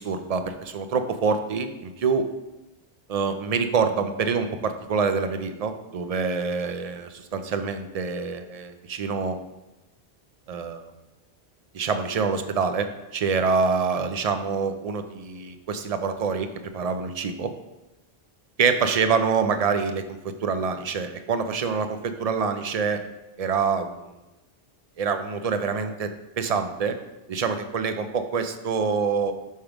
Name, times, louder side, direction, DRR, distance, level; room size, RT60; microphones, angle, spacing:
voice 1, 0.0-2.3 3.1-9.4 10.5-10.9 11.7-12.9 13.1-17.5 18.6-23.0 23.4-24.0 25.0-26.1 26.4-27.0 27.3-29.3, right 5 dB, 45° right, 8 dB, 0.6 m, -26 dB
5.9 x 5.6 x 5.0 m, 1.0 s
omnidirectional pair, 1.1 m